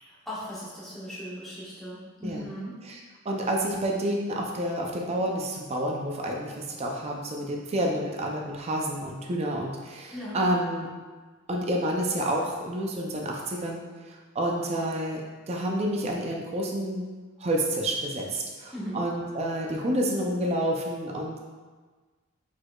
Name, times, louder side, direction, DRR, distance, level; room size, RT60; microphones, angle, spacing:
voice 1, 0.1-2.8 10.1-10.4 18.7-19.0, equal, ahead, -11 dB, 1.3 m, -38 dB
voice 2, 3.2-10.9 11.5-15.2 15.5-17.0 17.4-21.4, right 1 dB, 30° right, -1 dB, 0.4 m, -29 dB
4.7 x 4.3 x 2.3 m, 1.4 s
head